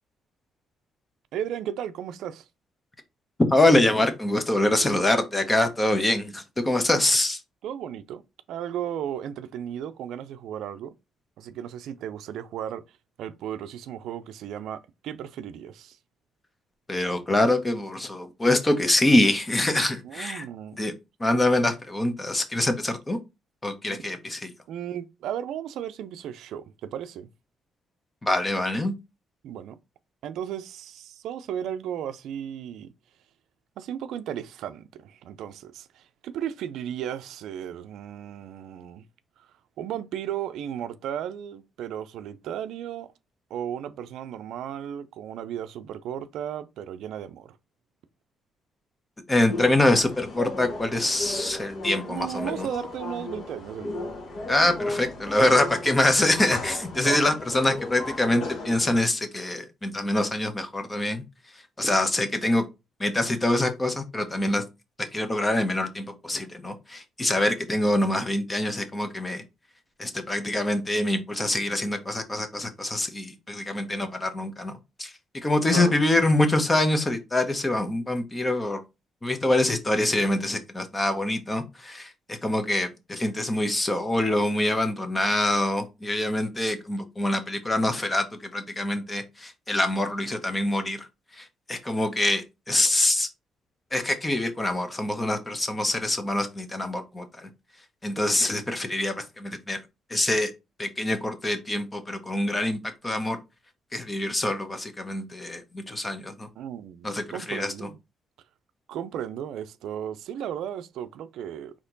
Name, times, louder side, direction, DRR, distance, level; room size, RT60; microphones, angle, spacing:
voice 1, 1.3-2.5 7.6-8.2 8.5-10.9 11.4-12.8 13.2-16.0 20.0-20.8 23.9-24.0 24.7-27.3 29.4-29.8 30.2-32.9 33.8-39.0 39.4-39.5 39.8-43.1 43.5-47.6 52.1-54.1 57.0-57.2 75.7-76.0 106.6-108.0 108.9-111.7, right 10 dB, 80° right, 0.4 m, -35 dB
voice 2, 3.4-7.4 16.9-20.4 20.8-20.9 21.2-23.2 23.6-24.5 28.2-28.9 49.3-52.7 54.5-61.2 61.8-62.6 63.0-64.6 65.1-69.4 70.0-74.7 75.0-75.1 75.4-78.8 79.2-91.1 91.3-93.3 93.9-97.5 98.0-99.8 100.1-100.5 100.8-103.4 103.9-106.5 107.0-107.7, left 1 dB, 20° left, 1.0 m, -25 dB
sound 1, 49.5-59.0, left 2 dB, 55° left, 1.2 m, -35 dB
4.3 x 3.0 x 3.8 m
cardioid pair, 90°, 0 cm